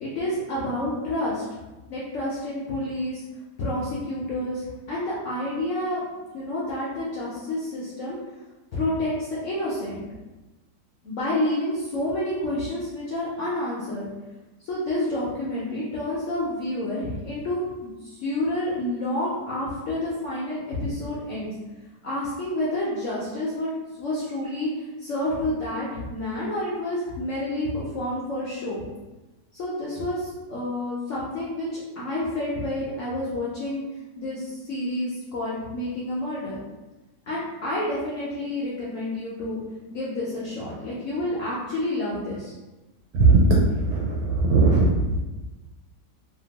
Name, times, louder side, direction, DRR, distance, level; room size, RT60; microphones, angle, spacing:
voice 1, 0.0-1.4 1.9-3.2 3.6-6.0 6.3-8.2 8.7-10.0 11.0-14.1 14.6-21.5 22.0-23.7 24.0-28.8 29.5-33.8 34.2-36.6 37.3-39.6 39.9-42.5, left 1 dB, 65° left, -7 dB, 0.8 m, -29 dB
voice 2, 43.1-45.2, right 3 dB, 80° right, -3 dB, 1.2 m, -19 dB
2.8 x 2.5 x 2.8 m, 1.1 s
omnidirectional pair, 1.9 m